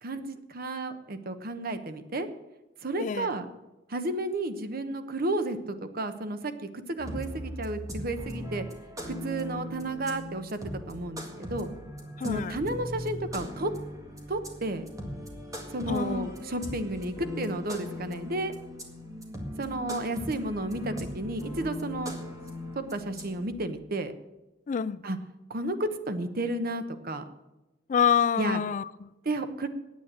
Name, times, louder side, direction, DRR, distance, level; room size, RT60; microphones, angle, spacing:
voice 1, 0.0-2.3 2.8-3.5 3.9-8.6 9.1-10.6 10.9-11.7 12.2-13.7 14.3-14.9 15.7-18.5 19.6-22.1 22.7-24.1 25.0-25.2 25.5-27.2 28.4-28.6 29.2-29.7, right 2 dB, 55° right, 1.0 m, -32 dB
voice 2, 3.0-3.3 12.2-12.6 15.9-16.3 16.6-16.8 24.7-25.0 27.9-29.1, left 7 dB, 45° left, 0.4 m, -27 dB
sound 1, 7.0-23.5, equal, 20° right, 1.9 m, -39 dB
9.4 x 8.5 x 8.7 m
head